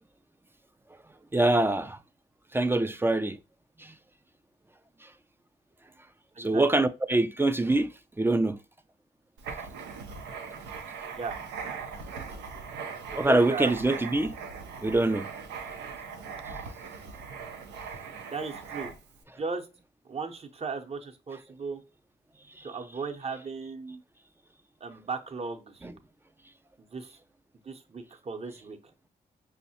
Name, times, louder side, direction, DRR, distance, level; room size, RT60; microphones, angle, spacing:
voice 1, 1.3-2.0 2.5-3.4 6.4-7.9 8.2-8.6 13.2-14.3 14.8-15.3 25.8-25.9, right 2 dB, 15° right, 0.3 m, -24 dB
Writing, 9.4-19.2, right 5 dB, 90° right, 0.5 m, -40 dB
voice 2, 13.1-13.7 18.3-18.9 19.4-19.7 20.0-21.8 22.6-24.0 24.8-25.8 26.9-27.2 27.6-28.8, right 4 dB, 35° right, 0.7 m, -36 dB
5.4 x 2.1 x 2.7 m
supercardioid pair, 50°, 18 cm